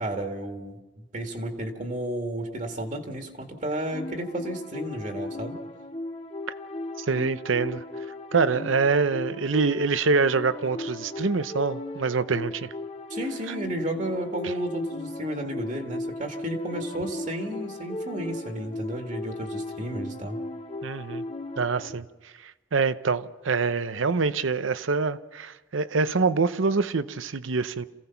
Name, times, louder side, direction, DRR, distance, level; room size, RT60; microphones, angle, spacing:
voice 1, 0.0-5.6 13.1-20.4, right 1 dB, 40° right, 1.9 m, -32 dB
sound 1, 3.8-21.9, left 1 dB, 30° left, 1.1 m, -37 dB
voice 2, 7.0-7.8 8.3-12.7 20.8-21.2 21.6-22.0 22.7-27.8, right 4 dB, 85° right, 0.7 m, -25 dB
27.5 x 16.5 x 5.8 m
head